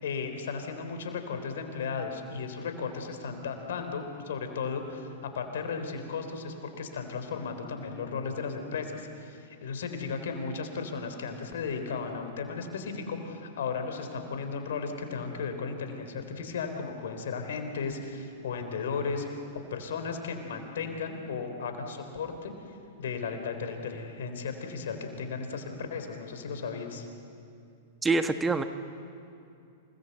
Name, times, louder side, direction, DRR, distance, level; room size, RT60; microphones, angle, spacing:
voice 1, 0.0-19.3 19.5-22.5 23.0-27.1, left 5 dB, 70° left, 6 dB, 3.8 m, -35 dB
voice 2, 28.0-28.6, right 3 dB, 15° right, 9 dB, 1.2 m, -25 dB
27.5 x 19.5 x 8.2 m, 2.6 s
hypercardioid pair, 105°, 0 cm